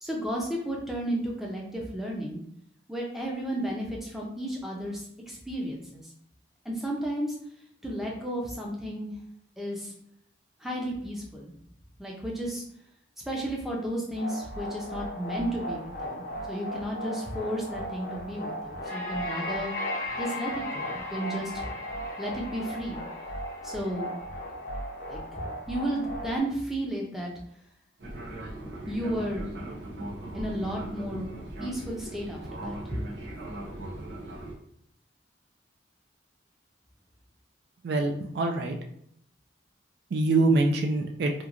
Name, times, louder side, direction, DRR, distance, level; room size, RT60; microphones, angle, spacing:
voice 1, 0.0-2.4 2.9-6.0 6.7-7.3 7.8-9.1 9.6-9.9 10.6-11.5 12.0-12.6 13.3-19.7 20.2-21.7 22.2-23.0 23.6-24.1 25.1-27.3 28.9-29.5 30.3-31.3 31.6-32.8, right 1 dB, ahead, -3 dB, 0.5 m, -33 dB
sound 1, 14.2-26.4, left 1 dB, 50° left, 0.5 m, -36 dB
Fixed-wing aircraft airplane, 28.0-34.5, right 1 dB, 80° right, 0.7 m, -38 dB
voice 2, 37.8-38.8 40.1-41.3, right 2 dB, 60° right, 4 dB, 0.3 m, -24 dB
3.0 x 2.2 x 2.5 m, 0.71 s
head